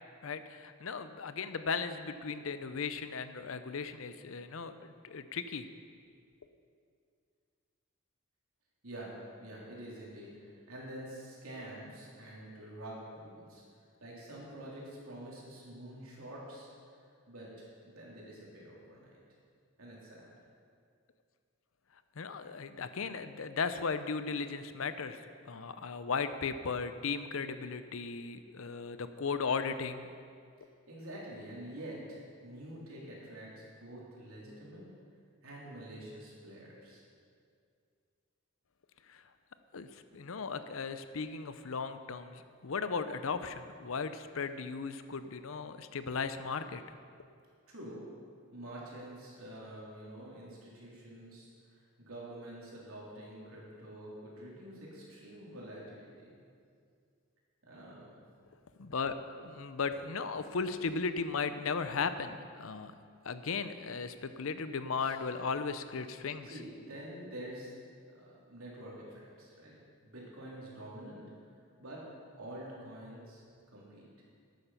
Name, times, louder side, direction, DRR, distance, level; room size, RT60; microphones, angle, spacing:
voice 1, 0.2-5.7 22.2-25.2 25.5-30.1 39.7-39.9 40.1-46.8 58.8-62.9 63.2-66.5, left 5 dB, 75° left, 11 dB, 0.6 m, -36 dB
voice 2, 9.4-13.6 14.0-16.7 17.3-19.2 19.8-20.3 30.9-34.8 35.4-37.0 47.7-48.0 48.5-51.5 52.0-56.1 57.7-58.2 65.0-65.1 66.4-67.7 68.1-69.8 70.0-71.3 71.8-72.0 72.4-73.4 73.7-74.1, right 1 dB, 85° right, -5 dB, 3.5 m, -47 dB
12.0 x 9.2 x 5.7 m, 2.3 s
head